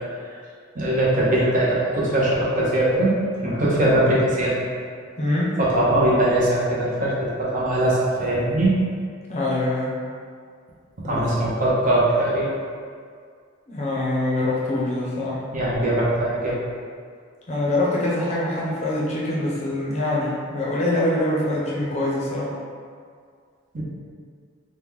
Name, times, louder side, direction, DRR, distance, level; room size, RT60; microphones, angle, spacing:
voice 1, 0.7-3.1 3.4-4.6 5.6-8.8 11.0-12.5 15.5-16.6 23.7-23.8, right 1 dB, 40° right, -6 dB, 0.7 m, -21 dB
voice 2, 5.2-5.6 9.3-9.9 11.1-11.2 13.7-15.4 17.5-22.5, left 1 dB, 35° left, -6 dB, 0.6 m, -24 dB
3.0 x 2.1 x 3.5 m, 2.1 s
head